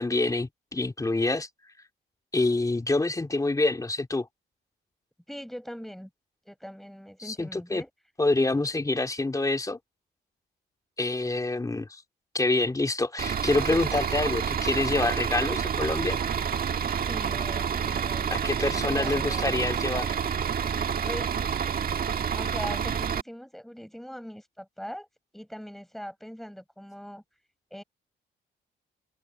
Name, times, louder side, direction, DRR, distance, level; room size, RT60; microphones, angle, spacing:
voice 1, 0.0-1.5 2.3-4.3 7.2-7.8 8.2-9.8 11.0-12.0 12.3-16.2 18.3-20.1, left 2 dB, 15° left, 2.8 m, -26 dB
voice 2, 5.3-6.1 6.5-7.9 17.1-18.4 18.7-19.7 21.1-21.3 22.3-25.1 25.3-27.2 27.7-27.8, equal, ahead, 7.3 m, -41 dB
Bus / Idling, 13.2-23.2, right 7 dB, 50° right, 1.6 m, -28 dB
open air
cardioid pair, 90°, 20 cm